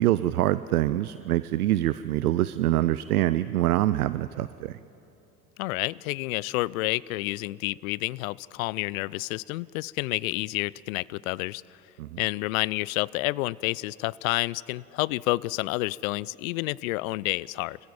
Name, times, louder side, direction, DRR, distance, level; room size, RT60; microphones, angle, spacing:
voice 1, 0.0-4.8 12.0-12.2, right 14 dB, 80° right, 16 dB, 0.6 m, -25 dB
voice 2, 5.6-11.6 12.2-17.8, left 20 dB, 65° left, 23 dB, 0.5 m, -29 dB
26.5 x 15.0 x 9.0 m, 2.9 s
figure-of-eight pair, 65°, 44 cm